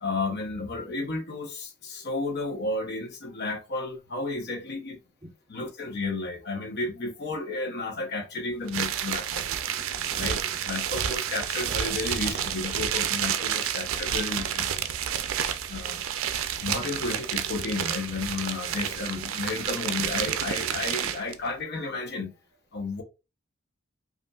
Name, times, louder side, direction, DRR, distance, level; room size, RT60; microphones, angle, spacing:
voice 1, 0.0-5.0 5.5-9.5 10.1-10.4 10.6-14.7 15.7-16.2 16.6-22.3 22.7-23.0, left 3 dB, 55° left, 0.8 m, -32 dB
sound 1, 8.7-21.3, right 9 dB, 75° right, 0.4 m, -30 dB
voice 2, 9.4-10.5, equal, 15° right, 0.7 m, -49 dB
5.3 x 2.5 x 2.3 m
head